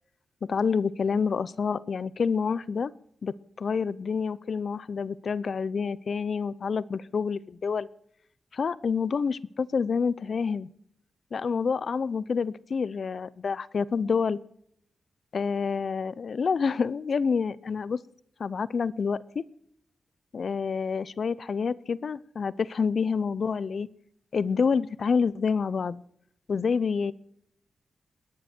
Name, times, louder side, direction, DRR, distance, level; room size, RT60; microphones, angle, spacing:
voice 1, 0.4-2.9 3.2-7.9 8.5-10.7 11.3-14.4 15.3-18.0 18.4-19.4 20.3-23.9 24.3-26.0 26.5-27.1, left 5 dB, 55° left, 20 dB, 0.6 m, -28 dB
29.5 x 10.5 x 4.5 m, 0.73 s
cardioid pair, 85°, 0 cm